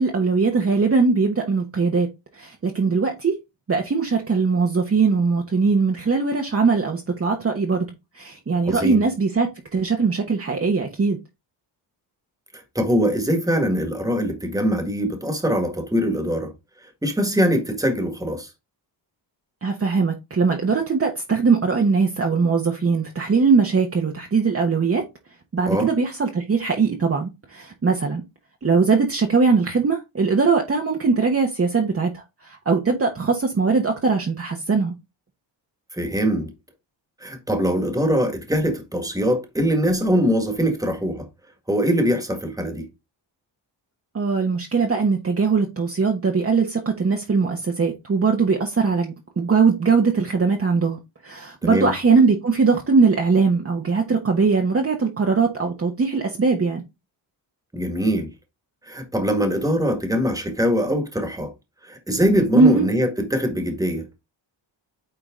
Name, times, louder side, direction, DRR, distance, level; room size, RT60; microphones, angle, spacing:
voice 1, 0.0-2.1 2.3-3.3 3.7-7.9 8.1-11.2 19.6-25.0 25.5-28.2 28.6-34.9 44.1-56.8 62.6-62.9, right 4 dB, 30° right, 1.1 m, -20 dB
voice 2, 8.7-9.0 12.8-16.5 17.0-18.5 25.7-25.9 35.9-36.5 37.2-41.3 41.7-42.9 51.6-51.9 57.7-58.3 58.9-61.5 61.8-64.1, equal, 5° right, 1.7 m, -22 dB
9.1 x 3.9 x 3.7 m
wide cardioid pair, 130°, 47 cm